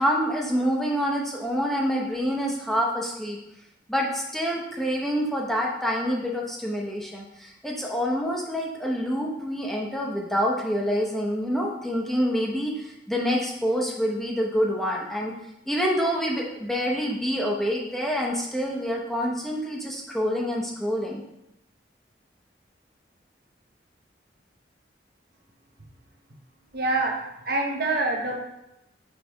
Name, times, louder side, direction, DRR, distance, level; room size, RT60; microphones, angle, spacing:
voice 1, 0.0-3.4 3.9-15.3 15.7-21.2, equal, ahead, -2 dB, 0.9 m, -27 dB
voice 2, 26.7-27.2 27.5-28.3, right 2 dB, 55° right, 1 dB, 1.0 m, -25 dB
6.4 x 3.3 x 4.5 m, 0.87 s
head